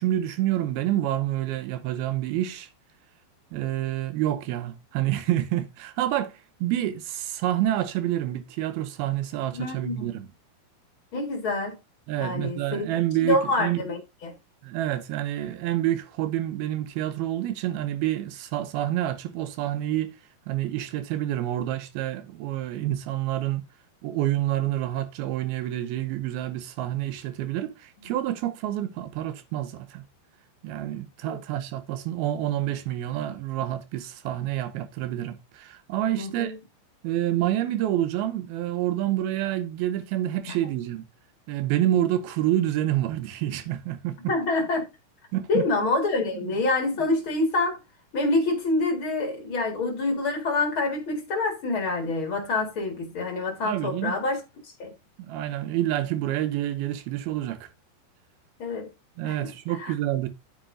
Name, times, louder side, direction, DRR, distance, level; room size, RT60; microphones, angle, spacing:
voice 1, 0.0-2.7 3.5-10.3 12.1-13.8 14.6-20.2 20.5-23.6 24.0-30.0 30.6-36.5 37.0-41.1 41.5-44.2 45.3-45.6 46.2-46.5 53.7-54.1 55.3-57.7 59.2-60.3, right 13 dB, 75° right, 2.5 m, -28 dB
voice 2, 9.5-10.1 11.1-11.8 12.2-12.9 13.2-14.3 31.2-31.4 36.2-36.6 40.5-40.6 44.3-44.9 45.5-47.8 48.1-54.9 58.6-58.9 59.2-59.9, left 2 dB, 50° left, 1.6 m, -27 dB
8.9 x 8.8 x 2.5 m
omnidirectional pair, 4.9 m